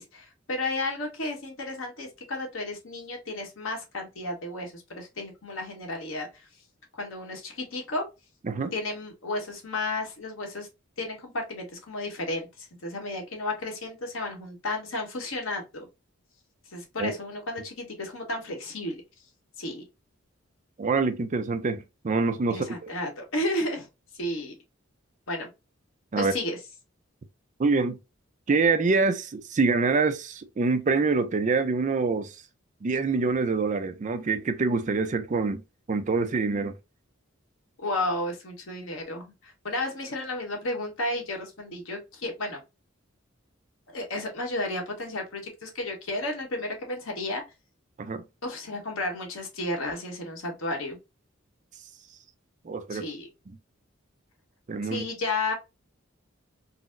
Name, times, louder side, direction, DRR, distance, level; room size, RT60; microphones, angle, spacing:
voice 1, 0.0-6.5 7.0-8.0 8.7-10.7 11.0-15.9 16.7-19.0 19.6-19.8 22.5-23.9 24.1-24.5 25.3-25.5 26.2-26.6 37.8-42.6 43.9-47.4 48.4-51.0 52.9-53.3 54.9-55.5, left 2 dB, 85° left, 1.1 m, -33 dB
voice 2, 20.8-22.9 26.1-26.3 27.6-28.0 28.5-32.3 32.8-35.6 35.9-36.8 48.0-48.2 52.6-53.1 54.7-55.1, right 4 dB, 40° right, 0.4 m, -25 dB
4.0 x 2.0 x 2.4 m
head